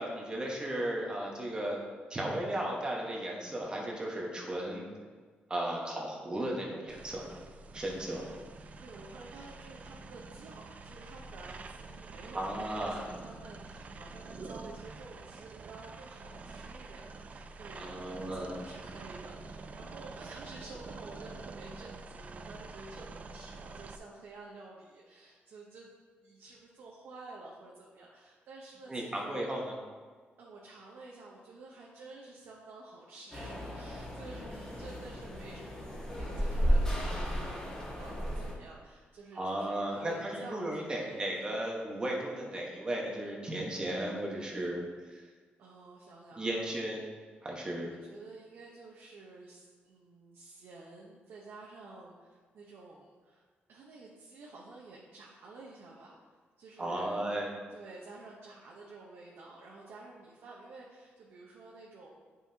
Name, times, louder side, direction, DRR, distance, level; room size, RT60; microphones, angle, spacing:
voice 1, 0.0-1.8 2.1-4.9 5.5-7.4 7.7-8.3 12.3-13.0 17.7-18.5 28.9-29.7 39.3-44.8 45.1-45.2 46.4-47.0 47.4-47.9 56.8-57.5, right 1 dB, 20° right, -2 dB, 1.3 m, -35 dB
sound 1, 6.9-24.0, right 3 dB, 40° right, 0.3 m, -47 dB
voice 2, 8.1-25.9 26.2-29.4 30.4-41.2 45.6-46.7 48.0-53.4 53.7-56.3 56.6-57.2 57.7-62.1, right 3 dB, 80° right, -3 dB, 1.0 m, -51 dB
sound 2, 33.3-38.5, equal, 15° left, 1.7 m, -33 dB
10.0 x 5.6 x 2.8 m, 1.5 s
wide cardioid pair, 155°, 4 cm